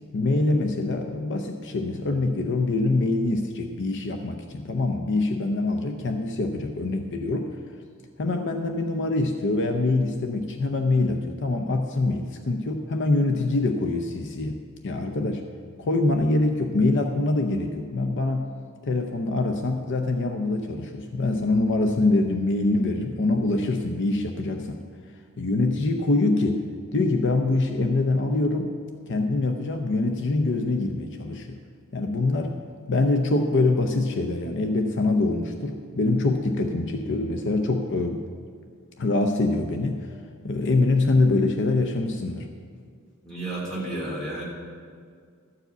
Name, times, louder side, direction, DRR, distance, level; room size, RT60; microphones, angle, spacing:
voice 1, 0.1-7.5 8.2-15.4 15.8-18.5 18.8-24.8 25.4-26.6 26.9-28.7 29.1-31.6 31.9-32.6 32.9-38.2 39.0-40.1 40.4-42.5, left 2 dB, 55° left, 5 dB, 0.6 m, -24 dB
voice 2, 43.2-44.4, right 1 dB, 5° left, -6 dB, 2.9 m, -31 dB
12.5 x 4.9 x 7.9 m, 2.1 s
head